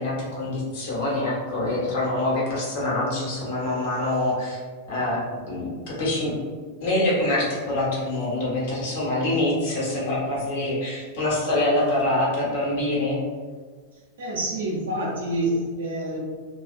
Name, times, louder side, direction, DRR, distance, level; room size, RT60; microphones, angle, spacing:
voice 1, 0.0-4.6 4.9-5.2 5.5-6.3 6.8-13.2, left 1 dB, 55° left, -6 dB, 1.0 m, -25 dB
voice 2, 14.2-16.2, right 1 dB, 65° right, -4 dB, 0.7 m, -27 dB
2.4 x 2.3 x 2.5 m, 1.5 s
figure-of-eight pair, 90°, 0 cm